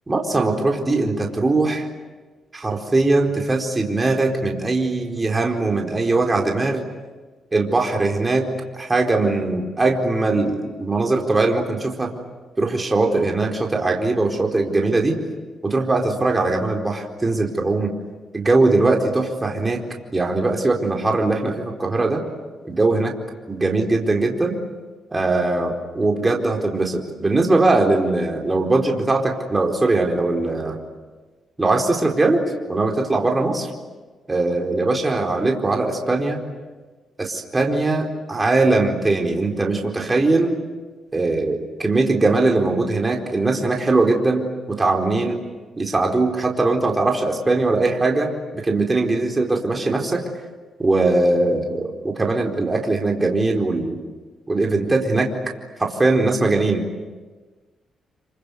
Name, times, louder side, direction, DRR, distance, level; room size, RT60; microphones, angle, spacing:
voice 1, 0.1-1.9 2.5-6.8 7.5-8.5 8.8-12.1 12.6-15.2 15.6-17.9 18.3-19.8 20.1-22.2 22.6-23.1 23.5-24.6 25.1-30.8 31.6-32.4 32.7-33.7 34.3-36.4 37.2-40.5 41.1-45.4 45.8-50.2 50.8-54.0 54.5-55.3 55.8-56.8, right 2 dB, 25° right, 1 dB, 4.3 m, -20 dB
28.0 x 24.5 x 8.2 m, 1.3 s
cardioid pair, 75°, 0 cm